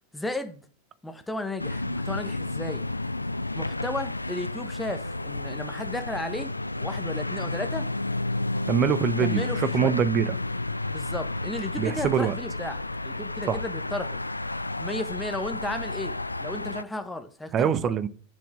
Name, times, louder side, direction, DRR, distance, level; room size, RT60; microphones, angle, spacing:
voice 1, 0.1-0.6 1.0-2.8 3.5-7.9 9.2-10.0 10.9-14.2 14.8-17.9, left 2 dB, 5° left, 1.1 m, -34 dB
sound 1, 1.6-16.8, left 2 dB, 85° left, 0.3 m, -31 dB
voice 2, 8.7-10.4 11.8-12.3 13.5-13.6 17.5-18.1, right 8 dB, 30° right, 0.7 m, -24 dB
9.5 x 6.9 x 3.8 m
figure-of-eight pair, 90°, 0 cm